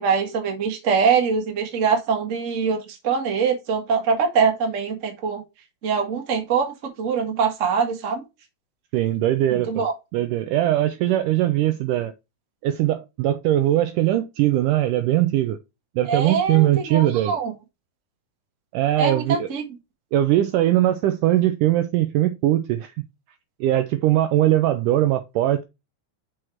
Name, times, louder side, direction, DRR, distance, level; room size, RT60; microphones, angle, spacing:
voice 1, 0.0-5.4 5.8-8.2 9.5-9.9 16.1-17.5 19.0-19.6, right 6 dB, 40° right, 1.1 m, -23 dB
voice 2, 8.9-9.9 10.1-12.1 12.6-15.6 16.0-17.4 18.7-19.5 20.1-23.0 23.6-25.6, right 13 dB, 80° right, 1.9 m, -20 dB
6.2 x 4.9 x 4.4 m
omnidirectional pair, 4.2 m